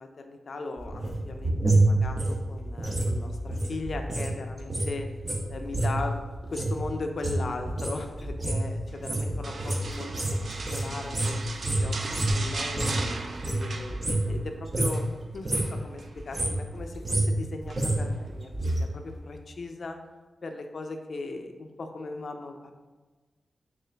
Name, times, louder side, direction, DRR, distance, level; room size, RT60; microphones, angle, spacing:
voice 1, 0.0-5.1 5.5-6.2 6.5-10.1 10.7-12.0 12.3-13.0 13.4-20.0 20.4-22.7, left 3 dB, 65° left, 5 dB, 0.4 m, -38 dB
sound 1, 0.8-4.3 4.6-13.1 13.3-14.4 14.7-15.0 15.3-15.8 16.2-18.8 19.1-19.2, right 2 dB, 35° right, 0.7 m, -28 dB
sound 2, 9.4-14.4 14.7-15.1 15.5-16.5 17.7-18.1 18.6-18.8, right 3 dB, 65° right, 0.3 m, -38 dB
3.8 x 2.4 x 3.3 m, 1.3 s
cardioid pair, 65°, 0 cm